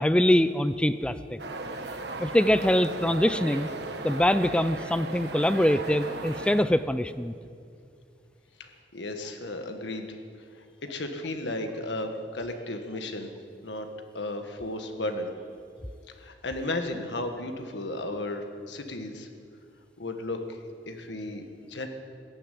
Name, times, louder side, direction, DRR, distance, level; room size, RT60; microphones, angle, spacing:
voice 1, 0.0-1.4 2.2-3.7 4.0-7.3, left 1 dB, 5° left, 13 dB, 0.4 m, -24 dB
sound 1, 1.4-6.7, right 2 dB, 65° right, 1.3 m, -36 dB
voice 2, 8.6-10.2 10.5-13.3 13.6-13.9 14.1-15.3 16.1-19.3 20.0-20.6 20.9-21.9, left 2 dB, 80° left, 6 dB, 1.5 m, -34 dB
14.5 x 10.0 x 9.2 m, 2.4 s
head